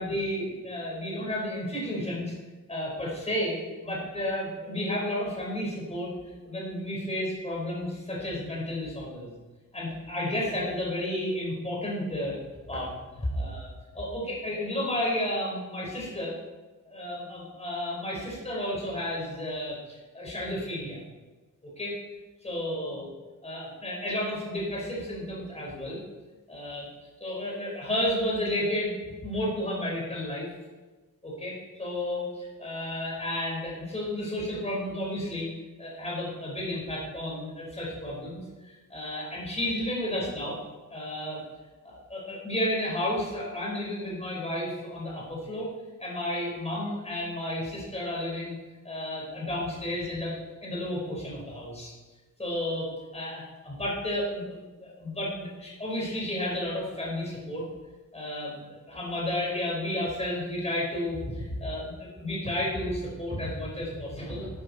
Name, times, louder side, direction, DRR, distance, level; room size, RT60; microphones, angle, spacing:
voice 1, 0.0-2.3 2.7-9.3 9.7-12.4 12.7-12.9 13.2-16.3 16.9-21.0 21.8-21.9 22.4-23.1 23.4-26.0 26.5-26.9 27.2-30.5 31.2-35.5 35.8-38.4 38.9-40.6 40.9-41.4 41.8-45.7 46.0-48.6 48.8-50.3 50.6-51.9 52.4-57.6 58.1-64.5, left 1 dB, 20° left, -4 dB, 4.9 m, -32 dB
12.0 x 12.0 x 4.4 m, 1.2 s
wide cardioid pair, 170°, 33 cm